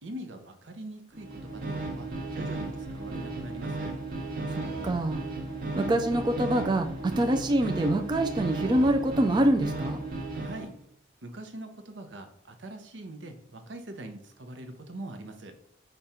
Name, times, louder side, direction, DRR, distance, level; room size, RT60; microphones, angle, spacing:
voice 1, 0.0-4.0 10.3-10.8 11.2-15.5, right 1 dB, 80° right, 6 dB, 0.7 m, -43 dB
sound 1, 1.1-10.7, right 3 dB, 50° right, 1.0 m, -35 dB
voice 2, 4.5-5.2 5.7-10.0, right 1 dB, 25° right, 6 dB, 0.3 m, -25 dB
5.1 x 2.3 x 4.2 m, 0.71 s
head